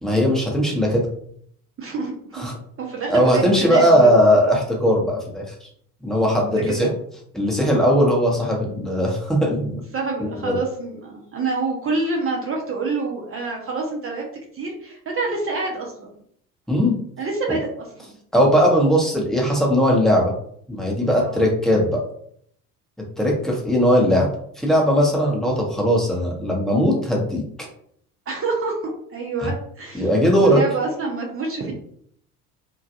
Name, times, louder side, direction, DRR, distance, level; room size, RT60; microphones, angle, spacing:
voice 1, 0.0-1.1 2.3-2.5 3.1-5.4 6.0-6.9 7.3-9.8 10.2-10.5 16.7-17.0 18.3-20.3 20.7-22.0 23.2-24.3 24.6-27.4 29.4-29.5 29.9-30.6, equal, ahead, -2 dB, 0.8 m, -18 dB
voice 2, 1.8-2.5 2.8-4.2 6.5-6.9 9.9-14.2 14.5-16.1 17.2-17.7 21.1-21.4 28.3-30.1 30.4-31.7, right 3 dB, 30° right, 0 dB, 0.7 m, -27 dB
2.4 x 2.2 x 2.8 m, 0.64 s
figure-of-eight pair, 55°, 46 cm